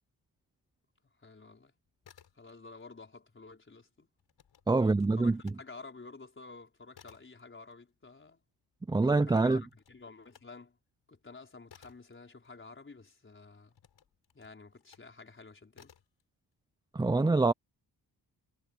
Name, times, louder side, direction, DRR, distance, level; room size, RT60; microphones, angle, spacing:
voice 1, 1.2-1.7 2.3-4.1 4.8-8.4 9.1-10.8 11.1-13.7 14.3-15.9, left 3 dB, 30° left, 5.0 m, -51 dB
sound 1, 1.9-2.9 3.1-5.6 6.0-13.1 13.7-15.2 15.7-16.2, left 8 dB, 90° left, 6.2 m, -62 dB
voice 2, 4.7-5.4 8.9-9.6 16.9-17.5, right 3 dB, 10° right, 0.4 m, -25 dB
wide cardioid pair, 155°, 42 cm